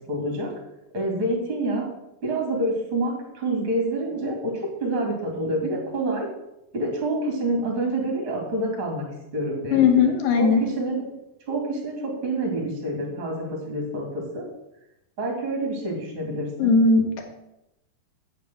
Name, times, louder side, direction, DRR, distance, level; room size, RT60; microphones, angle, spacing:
voice 1, 0.1-0.5 0.9-1.9 2.2-6.3 6.7-9.1 9.3-9.8 10.4-11.0 11.5-14.4 15.2-16.7, right 1 dB, 40° right, 1 dB, 3.0 m, -27 dB
voice 2, 9.7-10.6 16.6-17.2, left 5 dB, 70° left, 3 dB, 3.0 m, -18 dB
8.9 x 6.9 x 6.9 m, 0.88 s
omnidirectional pair, 4.1 m